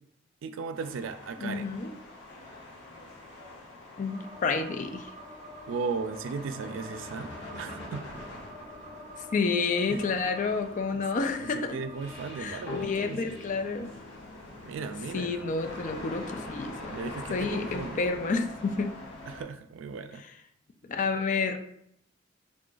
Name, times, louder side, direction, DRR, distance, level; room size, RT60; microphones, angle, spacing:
voice 1, 0.4-1.8 5.7-7.3 7.6-8.1 9.9-10.0 10.9-11.0 11.4-13.4 14.7-15.5 16.9-18.1 19.3-20.2, right 4 dB, 75° right, 10 dB, 0.3 m, -36 dB
sound 1, 0.7-19.4, left 2 dB, 60° left, 1.3 m, -45 dB
voice 2, 1.4-1.9 4.0-5.1 9.3-11.8 12.4-13.9 15.1-19.0 20.8-21.6, left 4 dB, 40° left, 7 dB, 0.4 m, -30 dB
sound 2, 4.1-13.0, equal, 25° right, 0.6 m, -47 dB
sound 3, 12.7-16.1, left 5 dB, 85° left, 0.7 m, -44 dB
3.6 x 2.4 x 3.8 m, 0.73 s
head